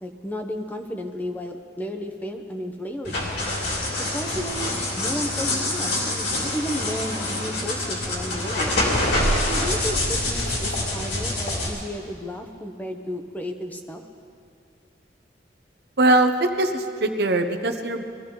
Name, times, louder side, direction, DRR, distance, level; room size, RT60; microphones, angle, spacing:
voice 1, 0.0-3.3 3.9-8.8 9.5-14.0, equal, 10° left, 4 dB, 0.9 m, -33 dB
sound 1, 3.0-11.7, left 1 dB, 65° left, 3.4 m, -25 dB
voice 2, 16.0-16.3 16.6-18.0, right 2 dB, 65° right, 6 dB, 1.0 m, -21 dB
22.0 x 15.0 x 3.9 m, 2.5 s
head